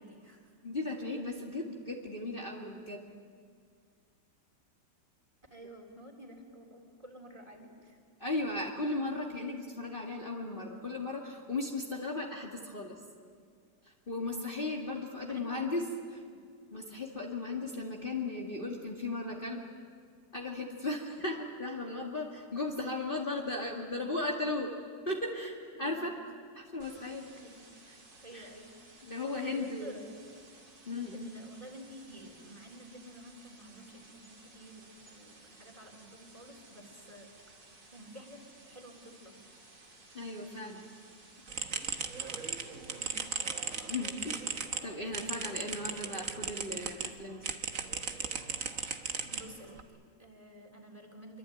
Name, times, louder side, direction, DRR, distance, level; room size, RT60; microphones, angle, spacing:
voice 1, 0.0-0.5 5.5-8.0 15.2-16.4 25.8-26.2 27.4-27.7 28.2-28.7 29.5-30.3 31.1-37.3 37.6-38.4 38.6-39.4 42.9-43.4 49.3-51.4, equal, 20° right, 2 dB, 3.7 m, -51 dB
voice 2, 0.6-3.0 8.2-13.0 13.8-15.8 16.7-19.6 20.3-24.7 25.1-26.1 26.6-27.3 28.3-28.5 29.1-30.0 30.9-31.3 40.1-40.8 43.9-44.5 44.8-47.5, left 2 dB, 30° left, -1 dB, 2.1 m, -36 dB
sound 1, 26.8-44.0, right 2 dB, 70° right, 4.3 m, -57 dB
sound 2, 41.5-47.1 47.4-49.8, right 5 dB, 50° right, 1.6 m, -37 dB
25.5 x 24.0 x 9.3 m, 2.1 s
omnidirectional pair, 1.9 m